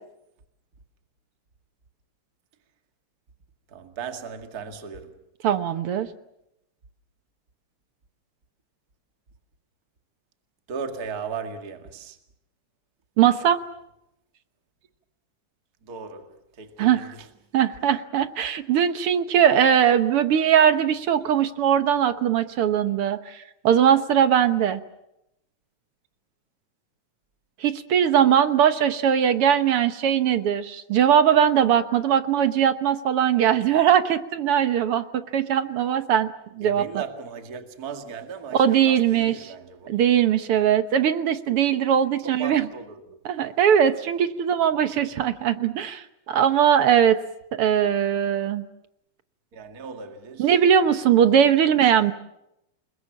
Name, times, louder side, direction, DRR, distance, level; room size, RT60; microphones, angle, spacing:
voice 1, 3.7-5.2 10.7-12.2 15.8-17.3 36.6-39.9 42.2-43.2 49.5-50.6 51.2-51.5, right 6 dB, 35° right, 2.2 m, -37 dB
voice 2, 5.4-6.1 13.2-13.6 16.8-17.1 17.5-24.8 27.6-36.3 36.6-36.8 38.5-39.4 39.9-42.7 43.2-47.2 47.5-48.6 50.4-52.1, right 9 dB, 60° right, 1.6 m, -20 dB
29.0 x 21.5 x 7.4 m
omnidirectional pair, 3.6 m